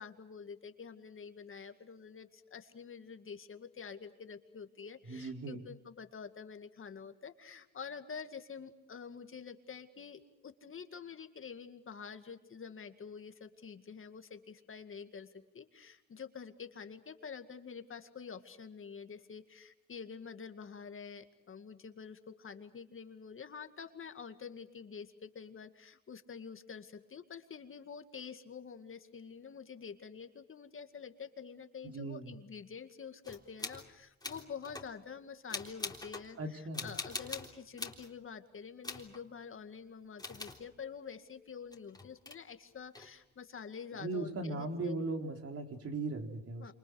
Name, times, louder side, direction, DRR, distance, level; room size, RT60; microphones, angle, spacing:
voice 1, 0.0-45.0 46.6-46.7, left 6 dB, 45° left, 8 dB, 2.1 m, -47 dB
voice 2, 5.1-5.6 31.8-32.3 36.4-36.9 43.9-46.7, right 3 dB, 50° right, 4 dB, 4.1 m, -38 dB
sound 1, 33.2-33.9 34.2-34.9 35.5-36.3 36.7-38.1 38.8-39.2 40.2-40.6 41.7-42.4 42.9-43.1, left 3 dB, 15° left, 3.6 m, -43 dB
28.0 x 27.0 x 6.4 m, 0.84 s
cardioid pair, 90°, 30 cm